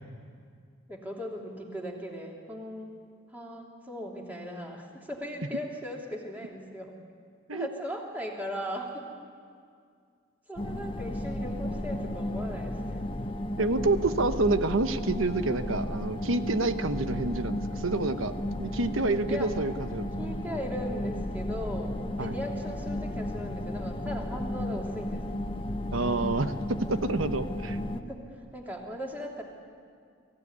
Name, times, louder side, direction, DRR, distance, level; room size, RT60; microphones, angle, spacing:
voice 1, 0.9-3.0 3.3-6.9 7.5-9.1 10.5-13.1 19.3-19.5 20.2-25.4 27.9-29.4, equal, 10° right, -1 dB, 3.0 m, -38 dB
sound 1, 10.6-28.0, left 1 dB, 25° left, 0.9 m, -34 dB
voice 2, 13.6-18.3 18.6-20.1 22.2-22.4 25.9-27.8, right 2 dB, 85° right, 10 dB, 1.0 m, -28 dB
24.0 x 15.5 x 9.6 m, 2.2 s
head